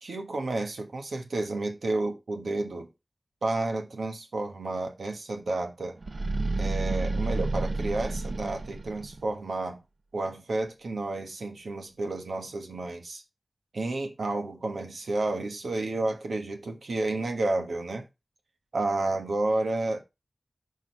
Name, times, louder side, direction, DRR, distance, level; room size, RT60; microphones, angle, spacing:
voice 1, 0.0-2.9 3.4-6.0 6.6-9.8 10.1-13.2 13.7-18.0 18.7-20.0, right 2 dB, 90° right, 1.3 m, -31 dB
sound 1, 6.0-9.3, right 2 dB, 55° right, 0.6 m, -30 dB
6.1 x 5.0 x 4.6 m
wide cardioid pair, 65°, 0 cm